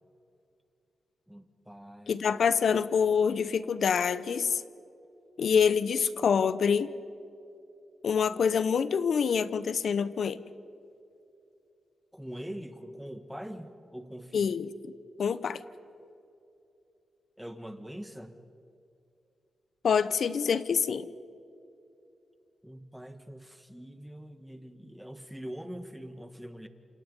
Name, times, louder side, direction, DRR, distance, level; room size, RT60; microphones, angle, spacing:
voice 1, 1.3-2.3 12.1-14.5 17.4-18.4 22.6-26.7, equal, ahead, 8 dB, 1.5 m, -43 dB
voice 2, 2.1-4.6 5.4-6.9 8.0-10.4 14.3-14.7 15.2-15.6 19.8-21.1, left 6 dB, 65° left, 15 dB, 0.8 m, -26 dB
28.5 x 27.5 x 5.4 m, 2.7 s
wide cardioid pair, 110°, 0 cm